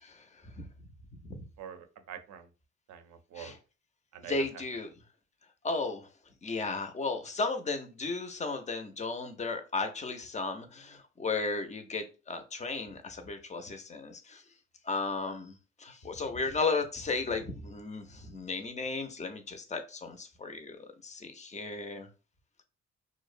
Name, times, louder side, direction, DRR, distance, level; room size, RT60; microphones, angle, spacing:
voice 1, 0.0-0.7 1.3-1.4 3.4-3.6 4.2-4.9 5.6-6.1 6.4-14.4 14.8-22.1, left 3 dB, 25° left, 7 dB, 0.4 m, -35 dB
voice 2, 1.6-2.5 2.9-3.6 4.1-4.6, right 9 dB, 65° right, 9 dB, 0.5 m, -45 dB
2.5 x 2.0 x 2.4 m, 0.32 s
cardioid pair, 90°, 30 cm